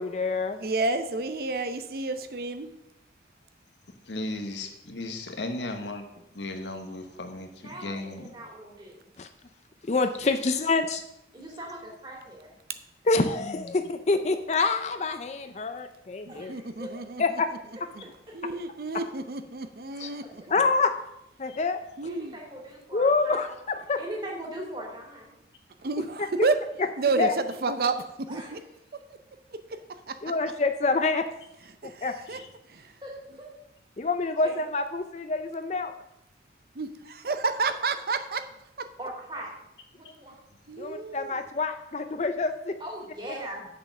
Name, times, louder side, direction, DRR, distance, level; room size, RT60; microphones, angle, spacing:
voice 1, 0.0-0.6 9.2-9.3 9.9-11.0 13.1-16.5 17.2-17.5 20.0-20.1 20.5-20.9 21.4-21.8 22.9-24.0 27.2-27.3 30.2-31.3 32.0-32.1 34.0-35.9 40.8-42.8, left 3 dB, 40° left, 8 dB, 0.5 m, -26 dB
voice 2, 0.6-2.7 16.5-17.2 18.3-20.2 22.0-22.3 25.8-26.6 27.0-28.6 29.1-29.2 29.5-29.6 30.1-30.2 31.8-32.4 32.7-32.9 36.8-38.4 38.8-38.9 40.7-41.3, right 3 dB, 55° right, 9 dB, 0.6 m, -30 dB
voice 3, 4.1-6.0 6.3-8.3 32.3-32.5, left 2 dB, 90° left, 5 dB, 1.3 m, -35 dB
voice 4, 7.6-9.1 10.3-10.4 11.3-12.5 16.3-17.0 19.9-20.3 22.0-23.4 24.0-25.3 28.3-28.7 32.7-33.5 34.4-34.5 39.0-39.5 39.9-40.3 42.8-43.7, right 1 dB, 25° right, -2 dB, 2.9 m, -40 dB
7.8 x 6.7 x 6.0 m, 0.84 s
head